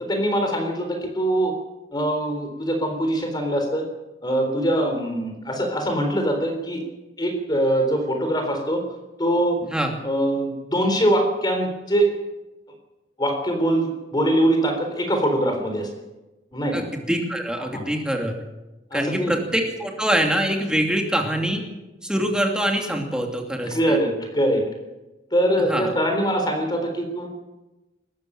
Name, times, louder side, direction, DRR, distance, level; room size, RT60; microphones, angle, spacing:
voice 1, 0.1-1.5 1.9-3.9 4.2-6.8 7.2-8.8 9.2-9.6 10.0-12.1 13.2-15.9 16.5-16.9 17.6-17.9 18.9-19.3 23.7-24.6 25.3-27.3, right 1 dB, 25° left, 4 dB, 3.8 m, -23 dB
voice 2, 16.7-18.3 18.9-21.6 22.0-24.0 25.7-25.9, equal, 5° right, 2 dB, 2.7 m, -24 dB
20.5 x 14.5 x 8.9 m, 1.1 s
head